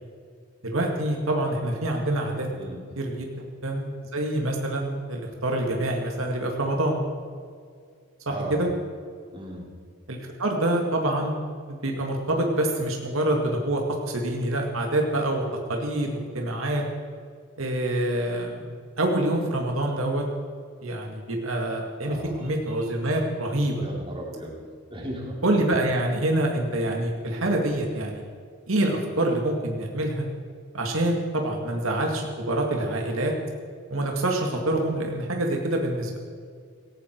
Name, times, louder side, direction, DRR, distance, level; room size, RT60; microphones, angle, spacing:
voice 1, 0.6-2.5 3.0-3.3 3.6-7.0 8.3-8.7 10.1-11.4 11.7-16.8 17.6-18.7 19.0-20.2 20.8-23.8 25.4-28.2 28.7-30.3 30.7-33.3 33.9-36.2, right 1 dB, 75° right, 1 dB, 2.1 m, -26 dB
voice 2, 9.3-9.7 22.1-22.5 23.8-24.6 24.9-25.4, right 1 dB, 25° right, -2 dB, 3.6 m, -36 dB
18.0 x 17.0 x 4.6 m, 2.1 s
head